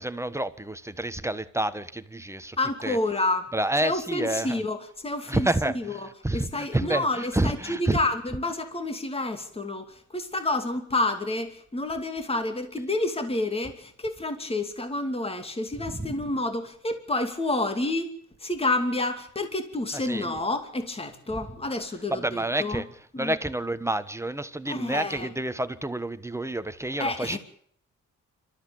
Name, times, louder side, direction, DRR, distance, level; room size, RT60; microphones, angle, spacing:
voice 1, 0.0-2.6 2.8-3.0 3.5-4.6 5.3-8.0 16.0-16.1 20.0-20.3 22.1-22.8 23.2-27.4, right 1 dB, 10° right, 1.4 m, -29 dB
voice 2, 2.6-3.5 3.8-5.5 5.7-18.1 18.4-22.8 23.1-23.4 24.7-25.3 27.0-27.4, left 2 dB, 20° left, 2.7 m, -29 dB
26.5 x 13.5 x 8.7 m
cardioid pair, 90°, 30 cm